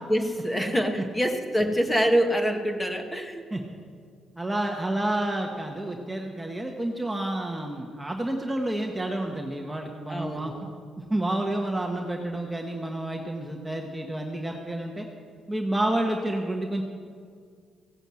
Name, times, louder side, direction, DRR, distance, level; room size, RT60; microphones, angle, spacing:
voice 1, 0.1-3.4 10.1-10.8, equal, 10° left, 4 dB, 1.7 m, -25 dB
voice 2, 4.4-10.5 11.0-15.1 15.5-16.8, right 1 dB, 10° right, 1 dB, 1.3 m, -29 dB
16.0 x 8.9 x 7.7 m, 2.1 s
cardioid pair, 90°, 0 cm